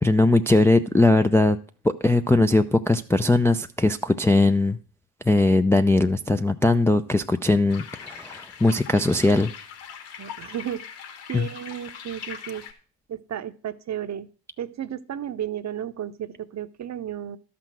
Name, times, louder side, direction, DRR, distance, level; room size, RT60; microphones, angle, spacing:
voice 1, 0.0-1.6 1.8-4.8 5.3-9.5 11.3-11.5, left 2 dB, 5° left, 6 dB, 0.5 m, -20 dB
Mountain Stream Loopable, 7.7-12.7, left 8 dB, 60° left, 2.5 m, -41 dB
voice 2, 10.2-10.8 11.3-12.6 13.1-14.3 14.6-17.4, right 10 dB, 35° right, 13 dB, 0.8 m, -33 dB
12.5 x 6.1 x 6.1 m, 0.38 s
hypercardioid pair, 75°, 48 cm